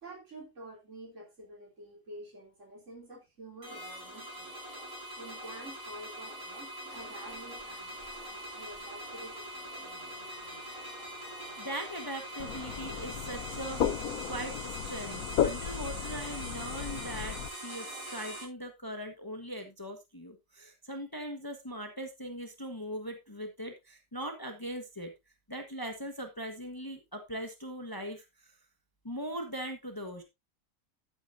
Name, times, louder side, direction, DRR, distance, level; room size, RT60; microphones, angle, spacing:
voice 1, 0.0-4.6 5.2-10.6, right 1 dB, 55° right, 4.1 m, -49 dB
sound 1, 3.6-18.4, right 1 dB, 85° right, 6.1 m, -43 dB
sound 2, 6.9-13.1, left 2 dB, 55° left, 3.2 m, -55 dB
voice 2, 11.6-14.0 14.3-25.1 25.5-28.2 29.0-30.2, equal, 15° left, 1.4 m, -40 dB
sound 3, 12.4-17.5, left 9 dB, 85° left, 1.3 m, -34 dB
12.0 x 8.8 x 2.7 m
omnidirectional pair, 1.5 m